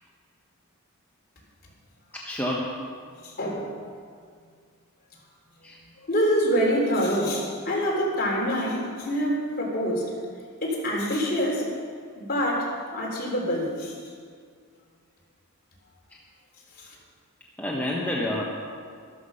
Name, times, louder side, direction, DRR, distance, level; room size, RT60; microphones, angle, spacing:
voice 1, 2.1-2.8 5.6-5.8 9.3-9.4 17.6-18.4, left 1 dB, 5° left, -4 dB, 1.2 m, -29 dB
voice 2, 3.2-3.7 6.1-10.1 10.6-11.7 12.2-14.1 16.7-17.0, equal, 45° left, -2 dB, 3.6 m, -26 dB
13.5 x 13.0 x 5.6 m, 2.1 s
head